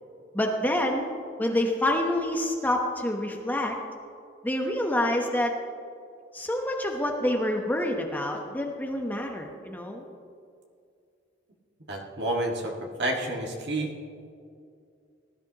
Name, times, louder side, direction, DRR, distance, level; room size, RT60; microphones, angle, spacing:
voice 1, 0.3-1.1 1.4-3.8 4.4-5.5 6.3-10.0, left 1 dB, 10° left, 1 dB, 0.9 m, -27 dB
voice 2, 11.9-12.7 13.0-13.9, right 1 dB, 60° right, 0 dB, 1.8 m, -29 dB
19.0 x 12.5 x 2.9 m, 2.4 s
head